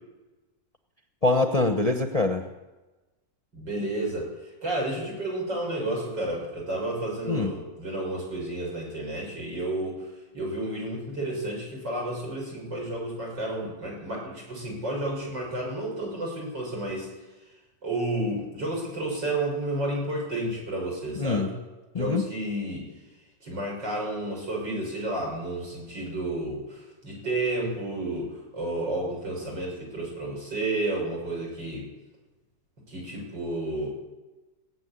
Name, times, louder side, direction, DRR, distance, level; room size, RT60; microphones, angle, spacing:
voice 1, 1.2-2.4 7.3-7.5 21.2-21.5 21.9-22.3, left 3 dB, 35° left, 5 dB, 0.6 m, -24 dB
voice 2, 3.5-17.1 17.8-21.5 22.0-22.9 23.4-31.9 32.9-33.9, right 1 dB, 90° right, -2 dB, 6.6 m, -31 dB
18.0 x 7.3 x 9.6 m, 1.1 s
omnidirectional pair, 1.9 m